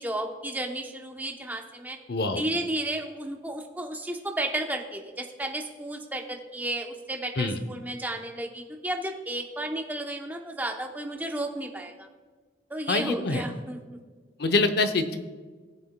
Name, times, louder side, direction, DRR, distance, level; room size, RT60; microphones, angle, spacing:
voice 1, 0.0-2.0 2.4-12.1 12.7-14.0, right 1 dB, 10° right, 2 dB, 0.7 m, -33 dB
voice 2, 2.1-2.4 7.4-7.6 12.9-13.4 14.4-15.2, left 3 dB, 55° left, 8 dB, 0.7 m, -25 dB
18.5 x 6.9 x 2.2 m, 1.4 s
head